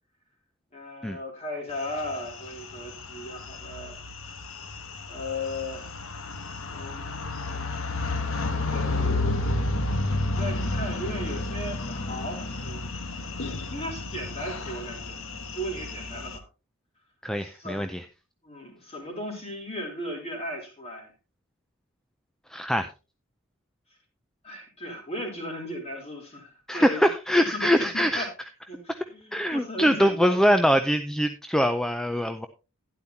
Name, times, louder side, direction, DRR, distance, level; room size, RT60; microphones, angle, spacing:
voice 1, 0.7-4.0 5.1-5.9 6.7-7.7 8.5-9.2 9.9-12.9 13.7-15.2 15.5-16.4 17.4-17.9 18.4-21.1 24.4-27.1 27.4-28.3 28.7-28.8 29.1-30.4, left 1 dB, 30° left, 1 dB, 3.4 m, -36 dB
sound 1, 1.8-16.4, left 2 dB, 65° left, 1.2 m, -31 dB
voice 2, 17.2-18.0 22.5-22.9 26.7-28.3 28.9-29.0 29.3-32.5, equal, ahead, 8 dB, 0.4 m, -23 dB
12.0 x 10.5 x 2.8 m, 0.30 s
head